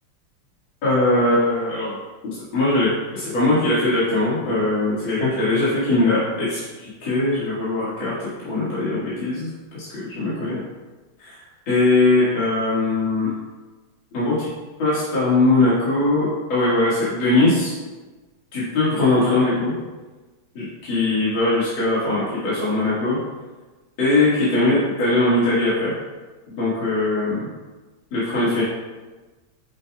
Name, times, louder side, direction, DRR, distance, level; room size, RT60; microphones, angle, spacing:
voice 1, 0.8-2.0 2.2-8.1 8.4-9.5 9.7-9.9 10.2-10.6 11.2-13.3 14.1-14.5 14.8-17.7 18.5-19.7 20.5-23.2 24.0-25.9 26.6-27.5 28.1-28.6, left 2 dB, 65° left, -10 dB, 2.6 m, -20 dB
8.2 x 6.6 x 2.3 m, 1.2 s
omnidirectional pair, 2.4 m